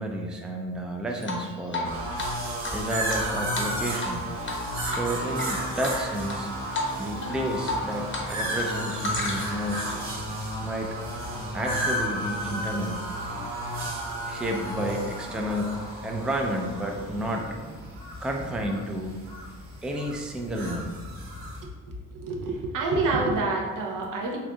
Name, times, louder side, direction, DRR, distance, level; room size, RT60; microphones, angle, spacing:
voice 1, 0.0-2.0 2.7-4.3 4.8-6.5 7.0-10.0 10.6-11.0 11.5-13.0 14.2-17.6 18.2-19.1 19.8-20.9, right 1 dB, 5° right, 1 dB, 0.3 m, -31 dB
Drip, 1.2-1.9 2.2-2.3 2.6-4.2 4.4-4.6 4.9-5.5 5.8-6.4 6.7-6.9 7.2-8.3 8.5-9.6, left 2 dB, 35° left, 0.8 m, -32 dB
sound 1, 1.8-21.6, right 1 dB, 40° right, 1.0 m, -33 dB
voice 2, 21.6-24.4, right 3 dB, 65° right, 0 dB, 0.8 m, -28 dB
4.3 x 2.5 x 2.3 m, 1.5 s
cardioid pair, 80°, 34 cm